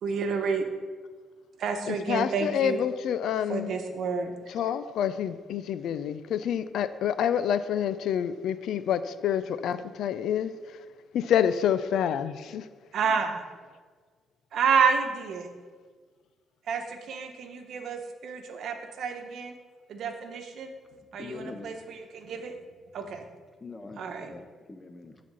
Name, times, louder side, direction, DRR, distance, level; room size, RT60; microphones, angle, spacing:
voice 1, 0.0-0.7 1.6-2.8 3.5-4.5 12.9-13.4 14.5-15.5 16.7-19.5 19.9-20.7 21.1-22.6 22.9-23.3 24.0-24.3, right 5 dB, 70° right, 1.0 m, -29 dB
voice 2, 1.9-3.8 4.5-10.8 11.1-12.7, left 9 dB, 75° left, 0.4 m, -28 dB
voice 3, 21.1-21.7 23.6-25.2, left 3 dB, 25° left, 0.9 m, -43 dB
9.9 x 4.2 x 6.2 m
cardioid pair, 90°, 0 cm